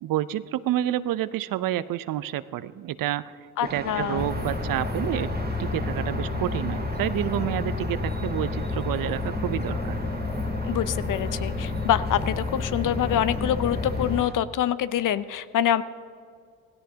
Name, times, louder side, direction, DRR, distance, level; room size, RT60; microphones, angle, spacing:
voice 1, 0.0-5.3 5.6-10.0, right 13 dB, 55° right, 16 dB, 0.6 m, -29 dB
voice 2, 3.6-4.3 10.6-15.8, left 10 dB, 50° left, 15 dB, 0.6 m, -25 dB
sound 1, 3.6-14.3, right 3 dB, 25° right, 1.7 m, -38 dB
sound 2, 4.2-14.2, left 4 dB, 15° left, 0.9 m, -30 dB
16.5 x 16.0 x 2.8 m, 2.2 s
hypercardioid pair, 60°, 41 cm